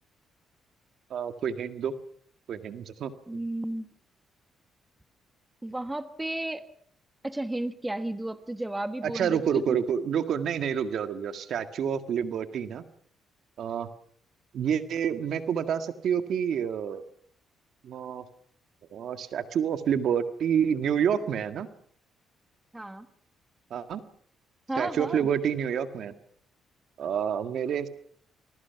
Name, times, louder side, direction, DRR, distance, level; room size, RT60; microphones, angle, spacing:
voice 1, 1.1-2.0 2.5-3.1 9.0-12.8 13.6-13.9 14.5-17.0 17.8-18.2 18.9-21.7 23.7-24.0 24.8-26.1 27.0-27.9, right 8 dB, 65° right, 9 dB, 1.8 m, -28 dB
voice 2, 3.3-3.9 5.6-6.6 7.2-9.8 22.7-23.1 24.7-25.3, right 1 dB, 10° right, 10 dB, 1.6 m, -33 dB
28.0 x 21.5 x 5.9 m, 0.62 s
cardioid pair, 90°, 0 cm